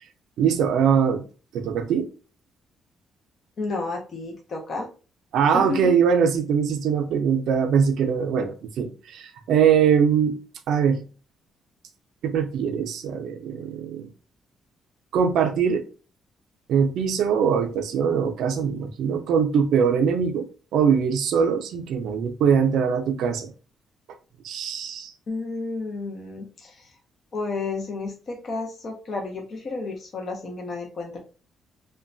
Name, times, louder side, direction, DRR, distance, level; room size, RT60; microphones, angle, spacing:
voice 1, 0.4-1.2 1.5-2.1 5.3-10.4 10.7-11.0 12.2-14.1 15.1-15.9 16.7-20.5 20.7-23.5 24.4-25.1, right 7 dB, 75° right, 0.4 m, -22 dB
voice 2, 3.6-4.9 5.5-5.9 25.3-26.8 27.3-31.2, left 3 dB, 40° left, 0.5 m, -31 dB
3.0 x 2.1 x 2.5 m
cardioid pair, 140°, 0 cm